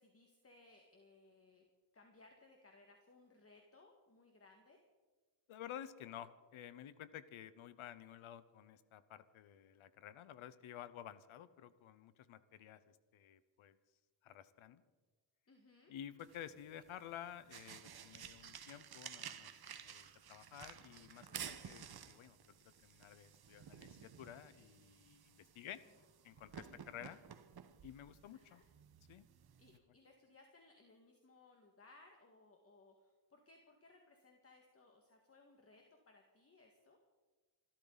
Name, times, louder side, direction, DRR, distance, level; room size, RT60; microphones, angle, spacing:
voice 1, 0.0-1.7 1.9-4.8 15.5-15.9 21.3-21.7 26.0-26.1 27.1-27.2 28.3-28.6 29.6-37.0, left 3 dB, 30° left, 2 dB, 1.9 m, -65 dB
voice 2, 5.5-12.8 13.1-13.8 14.2-14.8 15.9-22.4 22.6-25.8 26.2-27.2 27.8-28.6 29.1-29.2, left 10 dB, 90° left, 14 dB, 1.0 m, -52 dB
sound 1, 16.2-29.8, right 8 dB, 50° right, 1.2 m, -54 dB
26.5 x 13.0 x 4.1 m, 1.3 s
cardioid pair, 115°, 47 cm